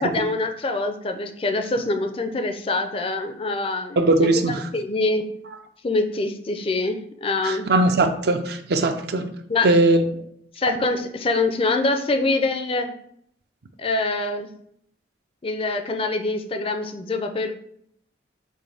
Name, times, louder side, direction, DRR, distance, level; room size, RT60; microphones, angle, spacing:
voice 1, 0.0-4.0 4.7-5.3 5.8-7.7 9.5-9.7 10.5-12.9 13.8-14.5 15.4-17.5, left 2 dB, 30° left, 6 dB, 0.4 m, -24 dB
voice 2, 4.0-4.6 7.4-9.3 9.6-10.0, right 2 dB, 60° right, 7 dB, 0.5 m, -19 dB
6.2 x 2.6 x 3.4 m, 0.69 s
head